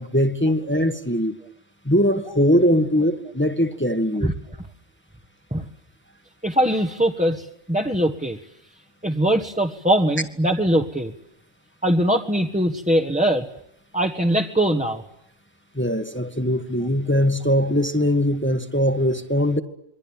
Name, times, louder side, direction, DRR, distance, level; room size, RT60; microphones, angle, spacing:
voice 1, 0.0-1.3 1.8-4.3 15.7-19.6, equal, 10° left, 1.6 m, -21 dB
voice 2, 6.4-8.4 9.0-11.1 11.8-13.5 13.9-15.0, right 1 dB, 5° right, 1.4 m, -21 dB
28.0 x 23.5 x 9.0 m
omnidirectional pair, 1.1 m